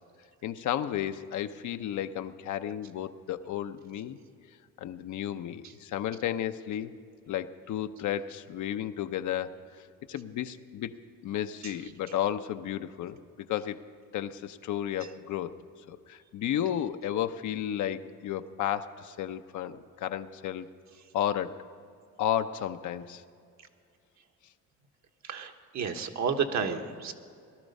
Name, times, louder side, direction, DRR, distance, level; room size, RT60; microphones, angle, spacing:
voice 1, 0.4-4.2 4.8-6.9 7.3-9.5 10.1-10.9 11.2-13.2 13.5-13.8 14.1-15.5 15.9-20.7 21.1-21.6 22.2-23.2, left 10 dB, 75° left, 9 dB, 0.7 m, -33 dB
voice 2, 25.2-27.1, right 6 dB, 65° right, 5 dB, 1.3 m, -31 dB
18.0 x 12.0 x 5.4 m, 2.3 s
cardioid pair, 90°, 30 cm